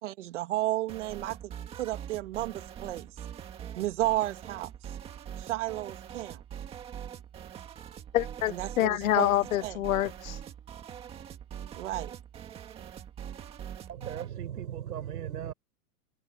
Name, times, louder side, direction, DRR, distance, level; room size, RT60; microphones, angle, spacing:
voice 1, 0.0-3.1 3.8-4.7 5.4-6.4 8.5-9.3 9.6-9.8 11.7-12.1, right 16 dB, 50° right, 2.4 m, -32 dB
sound 1, 0.9-14.3, right 9 dB, 10° right, 1.9 m, -43 dB
voice 2, 8.1-10.4, left 14 dB, 60° left, 0.6 m, -27 dB
voice 3, 13.9-15.5, right 10 dB, 85° right, 5.8 m, -37 dB
supercardioid pair, 175°, 46 cm